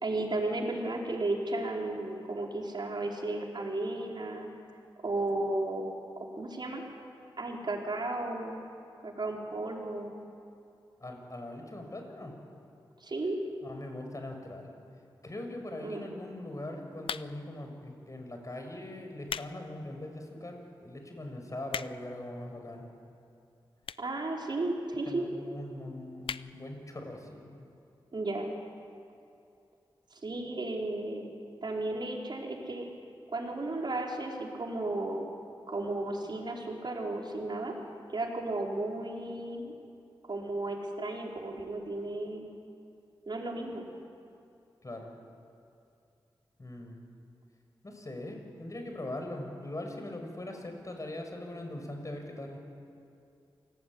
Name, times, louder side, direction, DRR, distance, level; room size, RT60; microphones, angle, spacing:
voice 1, 0.0-4.5 5.0-5.8 6.4-6.8 7.4-8.6 9.0-10.1 13.0-13.4 15.8-16.1 24.0-25.3 28.1-28.5 30.1-31.2 31.6-32.9 33.3-35.2 35.7-37.7 38.1-39.8 40.3-42.5 43.3-43.9, right 2 dB, 55° right, 0 dB, 4.9 m, -34 dB
voice 2, 11.0-12.4 13.6-14.7 15.2-22.9 25.1-27.7 44.8-45.1 46.6-47.0 47.8-52.6, left 1 dB, 35° left, 3 dB, 6.1 m, -41 dB
sound 1, 17.0-17.6 18.3-18.5 19.0-19.5 20.0-20.1 20.7-20.8 21.0-21.1 21.3-22.2 23.0-23.1 23.8-24.2 24.5-24.6 24.8-24.9 25.1-25.2 25.5-25.7 26.2-26.5 26.9-27.0 27.2-27.3, left 7 dB, 85° left, 0.5 m, -38 dB
27.5 x 18.5 x 9.8 m, 2.5 s
cardioid pair, 55°, 9 cm